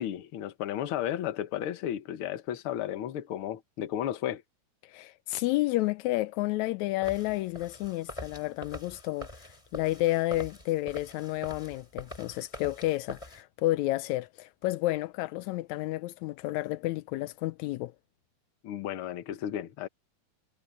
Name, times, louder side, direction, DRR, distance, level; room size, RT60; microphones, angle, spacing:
voice 1, 0.0-4.4 18.6-19.9, left 11 dB, 60° left, 1.5 m, -33 dB
voice 2, 4.8-17.9, left 17 dB, 80° left, 1.8 m, -31 dB
sound 1, 7.0-13.4, left 1 dB, 10° left, 4.0 m, -44 dB
omnidirectional pair, 3.6 m